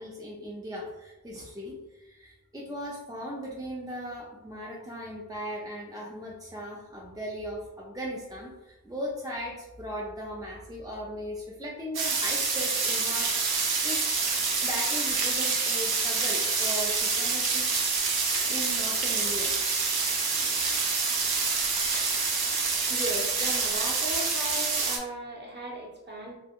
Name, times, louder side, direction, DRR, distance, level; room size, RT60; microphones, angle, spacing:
voice 1, 0.0-14.1 14.6-17.7 18.5-19.5, equal, 10° right, -4 dB, 0.4 m, -38 dB
sound 1, 11.9-25.0, right 4 dB, 75° right, 0.6 m, -27 dB
voice 2, 22.8-26.4, right 1 dB, 30° right, -3 dB, 0.8 m, -36 dB
2.3 x 2.0 x 3.5 m, 1.0 s
wide cardioid pair, 80°, 37 cm